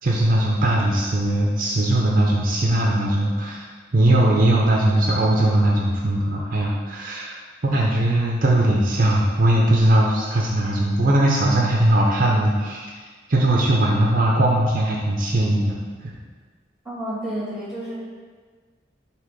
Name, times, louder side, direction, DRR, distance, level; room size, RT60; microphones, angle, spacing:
voice 1, 0.0-3.7 3.9-7.4 7.6-12.9 13.3-15.8 16.0-16.1, right 1 dB, 50° right, -2 dB, 0.6 m, -19 dB
voice 2, 16.8-17.9, right 1 dB, ahead, -7 dB, 1.8 m, -30 dB
6.5 x 3.0 x 5.2 m, 1.5 s
head